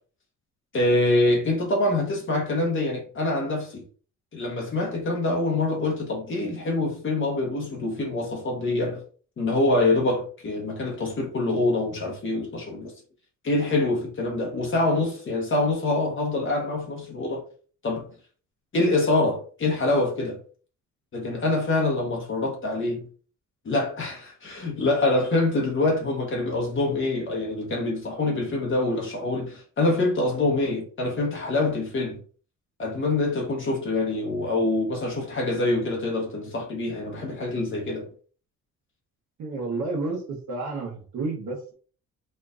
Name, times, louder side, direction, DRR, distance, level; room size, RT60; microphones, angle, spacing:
voice 1, 0.7-3.8 4.3-9.0 9.4-12.9 13.4-17.4 17.8-18.1 18.7-20.4 21.1-23.0 23.6-32.2 32.8-38.1, left 2 dB, 40° left, 0.9 m, -25 dB
voice 2, 39.4-41.7, right 3 dB, 70° right, 1.2 m, -31 dB
4.3 x 2.4 x 2.4 m
cardioid pair, 90°, 30 cm